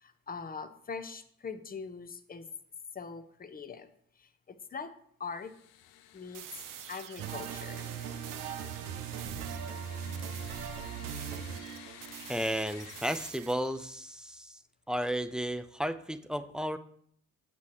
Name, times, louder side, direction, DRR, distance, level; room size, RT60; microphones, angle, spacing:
voice 1, 0.0-2.5 2.9-3.9 4.2-4.9 5.2-5.5 6.1-7.9, left 5 dB, 20° left, 11 dB, 0.7 m, -42 dB
sound 1, 5.3-13.3, left 11 dB, 70° left, 0.6 m, -53 dB
sound 2, 6.3-8.8 9.2-9.6 10.1-13.8, right 10 dB, 50° right, 0.6 m, -48 dB
sound 3, 7.2-12.4, right 7 dB, 85° right, 0.7 m, -39 dB
voice 2, 12.3-14.6 14.9-16.8, equal, ahead, 11 dB, 0.4 m, -33 dB
8.2 x 4.2 x 4.8 m, 0.63 s
hypercardioid pair, 40°, 43 cm